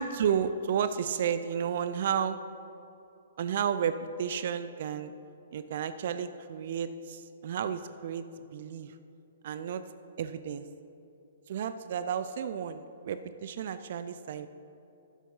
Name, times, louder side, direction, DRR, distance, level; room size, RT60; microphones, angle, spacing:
voice 1, 0.0-2.4 3.4-5.1 5.5-8.2 8.5-9.0 9.4-9.8 10.2-10.6 11.5-14.5, right 8 dB, 55° right, 12 dB, 0.4 m, -32 dB
9.9 x 7.1 x 5.5 m, 2.8 s
hypercardioid pair, 135°, 0 cm